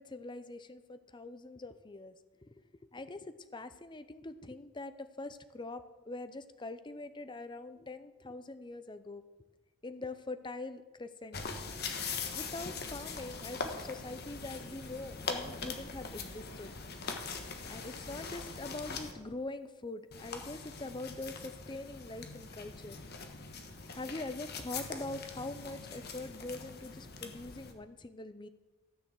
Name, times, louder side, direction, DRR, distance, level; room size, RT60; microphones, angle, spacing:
voice 1, 0.0-2.2 2.4-2.6 2.9-9.2 9.8-11.4 12.3-16.7 17.7-23.0 23.9-28.5, left 2 dB, 20° left, 12 dB, 0.6 m, -43 dB
sound 1, 11.3-19.1 20.1-27.7, left 4 dB, 50° left, 1.3 m, -42 dB
13.5 x 6.8 x 7.6 m, 1.2 s
head